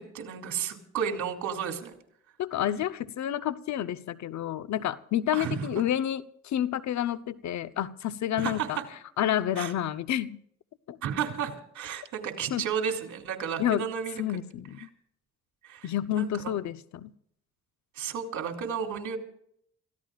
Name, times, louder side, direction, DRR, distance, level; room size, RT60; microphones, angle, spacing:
voice 1, 0.0-1.9 5.3-5.8 8.4-8.8 9.6-9.7 11.0-14.4 14.8-14.9 15.6-16.5 17.9-19.2, right 7 dB, 75° right, 4 dB, 2.9 m, -33 dB
voice 2, 2.4-8.8 9.2-10.4 10.9-11.0 12.5-12.7 13.6-13.8 14.2-14.9 15.8-17.1, left 11 dB, 70° left, 14 dB, 0.8 m, -29 dB
29.0 x 15.5 x 2.5 m, 0.68 s
cardioid pair, 90°, 30 cm